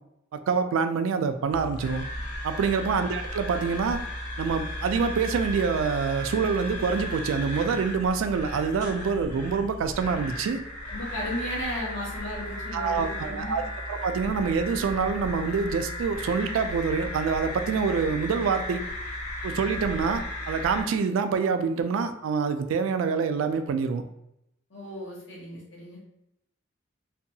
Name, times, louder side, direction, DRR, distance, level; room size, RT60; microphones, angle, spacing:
voice 1, 0.3-2.1 2.4-4.0 4.4-10.6 12.7-18.8 19.4-24.0, right 5 dB, 80° right, 9 dB, 0.3 m, -26 dB
sound 1, 1.5-20.8, left 1 dB, 40° left, 0.8 m, -35 dB
voice 2, 10.9-13.6 24.7-26.0, left 1 dB, 65° left, -4 dB, 1.0 m, -35 dB
2.7 x 2.3 x 2.6 m, 0.82 s
head